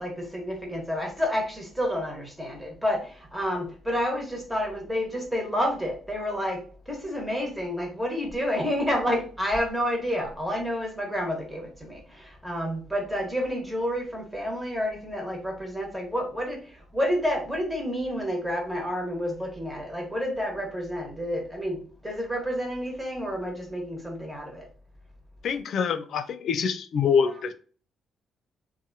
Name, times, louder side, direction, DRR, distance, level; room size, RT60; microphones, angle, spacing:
voice 1, 0.0-24.7, equal, 5° right, 1.1 m, -29 dB
voice 2, 25.4-27.5, left 6 dB, 65° left, 0.3 m, -25 dB
2.7 x 2.3 x 2.6 m
cardioid pair, 90°, 0 cm